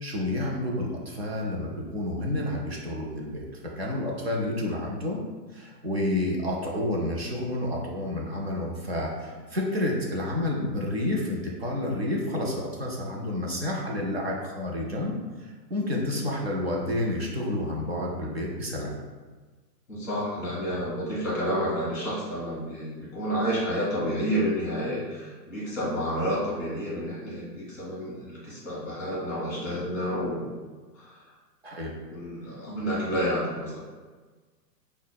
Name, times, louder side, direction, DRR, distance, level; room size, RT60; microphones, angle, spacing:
voice 1, 0.0-3.4 3.8-5.2 5.5-18.9 31.6-31.9, left 1 dB, 40° right, -1 dB, 0.4 m, -30 dB
voice 2, 19.9-30.5 30.9-31.3 32.1-33.8, equal, 5° left, -7 dB, 1.1 m, -30 dB
5.7 x 2.1 x 2.2 m, 1.4 s
hypercardioid pair, 180°, 49 cm